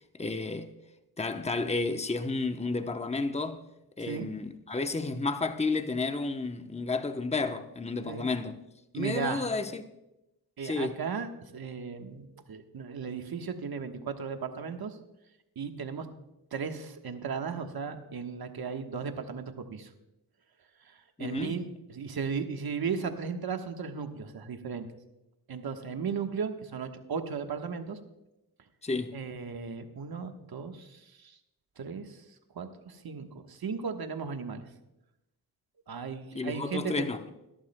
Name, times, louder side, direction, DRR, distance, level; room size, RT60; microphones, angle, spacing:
voice 1, 0.2-0.7 1.2-3.6 4.0-8.6 8.9-9.8 10.6-11.0 21.2-21.6 28.8-29.2 36.3-37.2, left 3 dB, 15° left, 0.8 m, -31 dB
voice 2, 8.9-9.5 10.6-15.0 15.6-16.1 16.5-19.9 21.2-21.6 21.9-24.9 25.5-28.0 29.1-31.4 31.8-32.2 32.5-34.6 35.9-37.0, right 6 dB, 65° right, 1.3 m, -36 dB
21.5 x 11.5 x 2.2 m
cardioid pair, 55°, 39 cm